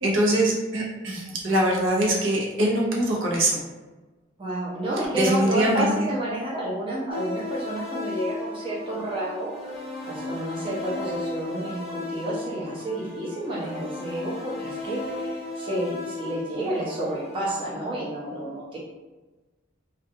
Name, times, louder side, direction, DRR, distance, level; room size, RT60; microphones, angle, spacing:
voice 1, 0.0-3.6 5.1-5.9, right 1 dB, 80° right, -3 dB, 0.7 m, -23 dB
voice 2, 4.4-18.8, right 1 dB, 25° right, -6 dB, 0.6 m, -30 dB
sound 1, 7.1-17.5, left 2 dB, ahead, 0.9 m, -35 dB
2.3 x 2.3 x 2.7 m, 1.2 s
head